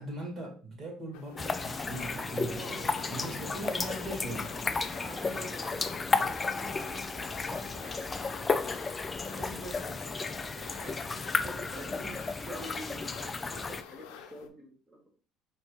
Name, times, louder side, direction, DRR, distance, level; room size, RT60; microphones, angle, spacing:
voice 1, 0.0-4.5, right 1 dB, 40° right, 2.0 m, -40 dB
sound 1, 1.1-14.5, left 8 dB, 85° left, 0.5 m, -49 dB
sound 2, 1.4-13.8, left 4 dB, 20° left, 0.3 m, -33 dB
voice 2, 2.5-2.9 4.9-7.1 7.4-10.1 10.7-15.2, right 1 dB, 15° right, 1.0 m, -47 dB
4.8 x 3.3 x 2.9 m
cardioid pair, 130°, 0 cm